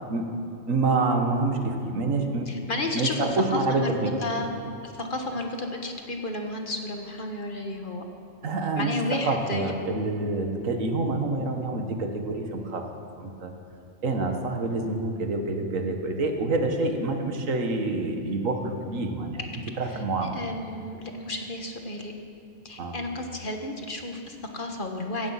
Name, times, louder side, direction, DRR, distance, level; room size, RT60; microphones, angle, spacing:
voice 1, 0.7-2.5 2.9-4.1 8.4-12.9 13.2-13.5 14.0-19.4 19.8-20.3 22.8-22.9, right 3 dB, 85° right, 4 dB, 1.8 m, -27 dB
voice 2, 2.5-4.5 4.8-8.0 8.8-9.7 19.8-20.0 20.3-22.1 22.6-25.3, left 2 dB, 40° left, 3 dB, 1.5 m, -32 dB
16.0 x 15.5 x 5.8 m, 2.5 s
omnidirectional pair, 1.3 m